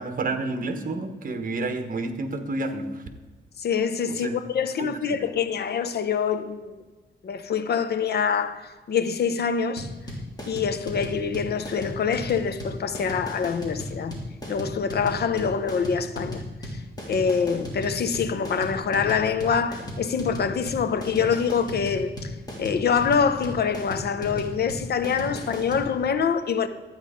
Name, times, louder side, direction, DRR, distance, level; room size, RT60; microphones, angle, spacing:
voice 1, 0.0-3.0 4.1-4.4 4.8-5.2, right 2 dB, 45° right, 1.3 m, -30 dB
voice 2, 3.6-6.7 7.2-9.9 10.5-14.2 14.5-16.4 16.7-16.8 17.1-22.3 22.6-26.7, left 6 dB, 60° left, 0.8 m, -25 dB
sound 1, 9.8-25.9, equal, 20° left, 3.2 m, -35 dB
12.0 x 9.0 x 5.0 m
wide cardioid pair, 135°, 19 cm